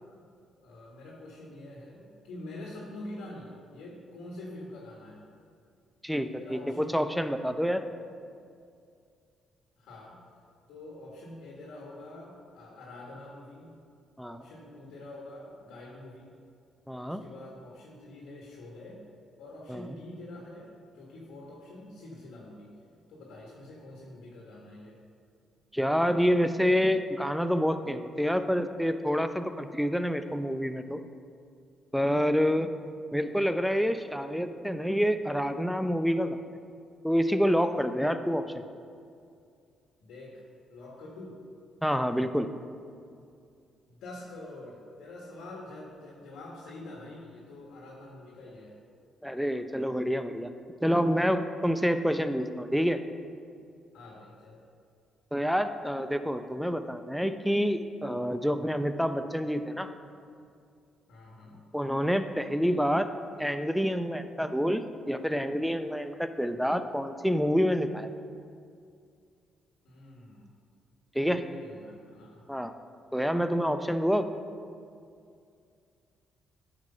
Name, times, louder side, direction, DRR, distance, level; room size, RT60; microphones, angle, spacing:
voice 1, 0.6-5.2 6.4-7.3 9.8-10.2 10.7-13.8 14.3-16.3 17.1-19.0 19.4-22.7 23.1-25.0 40.0-40.4 40.7-41.4 43.9-48.8 53.9-54.6 61.1-61.6 69.8-70.5 71.2-72.4, left 1 dB, 85° left, -4 dB, 1.4 m, -46 dB
voice 2, 6.0-7.8 14.2-14.4 16.9-17.2 19.7-19.9 25.7-31.0 31.9-32.7 33.1-36.4 37.0-38.4 41.8-42.5 49.2-50.5 50.8-53.0 55.3-59.9 61.7-63.1 63.4-68.1 71.1-71.4 72.5-72.7 73.1-74.3, equal, ahead, 9 dB, 0.5 m, -27 dB
9.4 x 4.9 x 5.5 m, 2.3 s
cardioid pair, 90°, 0 cm